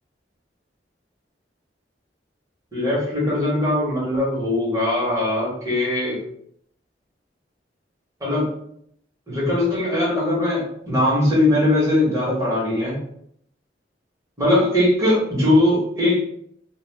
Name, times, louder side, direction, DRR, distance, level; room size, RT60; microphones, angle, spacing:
voice 1, 2.7-6.2 8.2-8.5 9.3-13.0 14.4-16.2, left 1 dB, 20° right, -7 dB, 1.2 m, -20 dB
2.4 x 2.3 x 3.4 m, 0.70 s
head